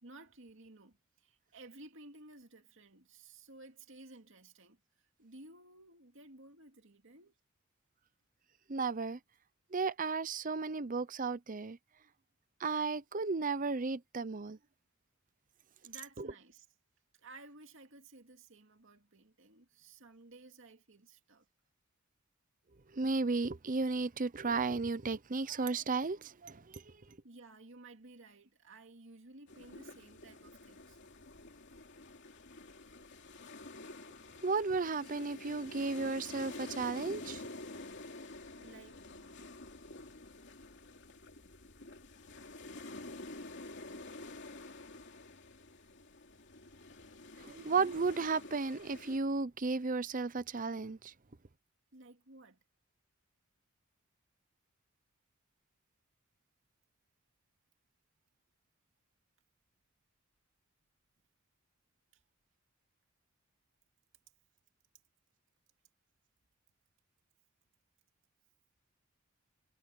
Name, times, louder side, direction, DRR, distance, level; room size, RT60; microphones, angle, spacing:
voice 1, 0.0-7.3 15.8-16.7 17.1-21.5 27.2-31.0 38.6-39.4 51.9-52.6 62.1-62.2, right 2 dB, 65° right, 2.5 m, -55 dB
voice 2, 8.7-9.2 9.7-11.8 12.6-14.6 16.2-16.3 22.9-27.0 34.4-37.4 47.4-51.1, right 4 dB, 40° right, 0.7 m, -34 dB
sound 1, 29.5-49.2, left 2 dB, 60° left, 2.9 m, -49 dB
head